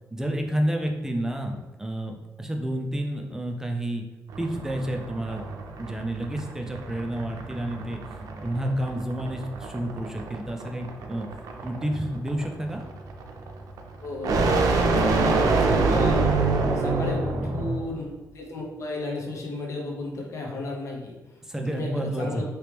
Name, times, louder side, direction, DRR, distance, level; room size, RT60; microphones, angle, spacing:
voice 1, 0.1-4.0 4.4-5.4 5.8-11.3 11.6-12.8 21.4-22.4, right 1 dB, 10° right, 2 dB, 0.4 m, -30 dB
sound 1, 4.3-17.8, right 3 dB, 85° right, 0.4 m, -26 dB
voice 2, 14.0-16.2 16.7-18.1 18.3-21.1 21.6-22.4, left 2 dB, 60° left, -1 dB, 0.8 m, -34 dB
3.0 x 2.9 x 3.3 m, 1.1 s
wide cardioid pair, 140°, 6 cm